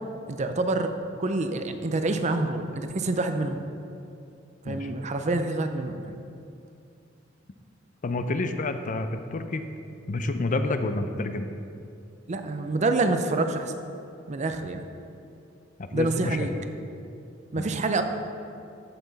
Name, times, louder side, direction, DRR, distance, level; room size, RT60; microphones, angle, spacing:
voice 1, 0.3-0.9 1.2-3.6 4.7-6.2 12.3-13.7 14.3-14.8 15.9-16.5 17.5-18.0, right 2 dB, 35° right, 7 dB, 0.5 m, -27 dB
voice 2, 8.0-9.6 10.1-11.5 15.8-16.5 17.5-17.7, left 2 dB, 40° left, 8 dB, 0.5 m, -29 dB
14.0 x 6.0 x 4.1 m, 2.6 s
head